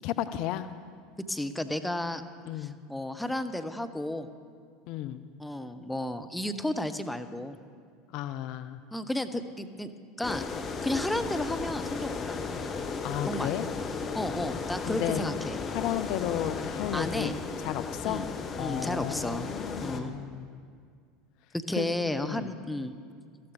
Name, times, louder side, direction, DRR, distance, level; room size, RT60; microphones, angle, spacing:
voice 1, 0.0-0.7 2.5-2.8 4.9-5.2 8.1-8.8 13.0-13.7 14.8-15.2 15.7-17.3 17.6-18.3 18.6-20.6 21.8-22.5, left 12 dB, 55° left, 12 dB, 0.5 m, -33 dB
voice 2, 1.3-2.2 2.6-4.3 5.4-7.6 8.9-9.9 10.2-10.4 10.8-12.4 13.3-13.5 14.1-15.6 16.9-17.3 18.0-18.3 18.6-19.5 19.8-20.1 21.5-22.9, left 1 dB, 5° left, 9 dB, 0.7 m, -32 dB
sound 1, 10.2-20.0, left 5 dB, 30° left, 1.1 m, -35 dB
14.0 x 12.5 x 4.9 m, 2.1 s
figure-of-eight pair, 75°, 0 cm